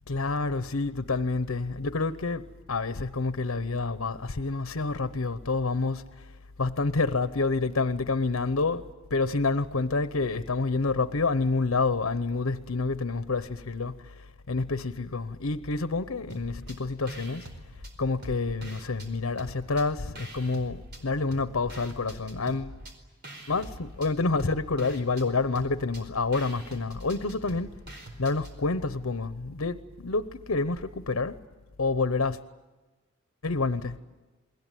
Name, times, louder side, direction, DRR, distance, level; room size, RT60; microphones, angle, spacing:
voice 1, 0.1-6.1 6.6-8.8 9.1-17.5 18.0-22.7 23.5-27.7 28.2-31.4 31.8-32.4 33.4-34.0, left 3 dB, 90° left, 0.9 m, -28 dB
sound 1, 16.3-16.8 17.1-19.1 19.4-21.0 21.3-28.6, right 1 dB, 55° right, 4.5 m, -45 dB
29.5 x 21.5 x 9.2 m
head